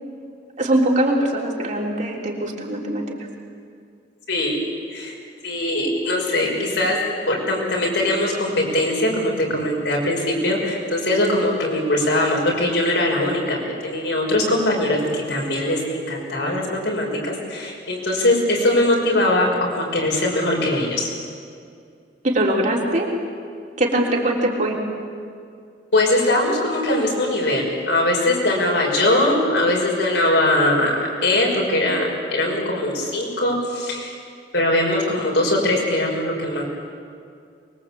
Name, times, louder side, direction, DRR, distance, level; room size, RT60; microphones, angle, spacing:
voice 1, 0.6-3.2 22.2-23.1 23.8-24.8, right 1 dB, 45° right, -1 dB, 3.6 m, -21 dB
voice 2, 5.4-7.0 7.3-21.1 25.9-34.1 34.5-36.6, left 1 dB, 85° left, -2 dB, 6.1 m, -21 dB
24.0 x 22.0 x 8.6 m, 2.3 s
head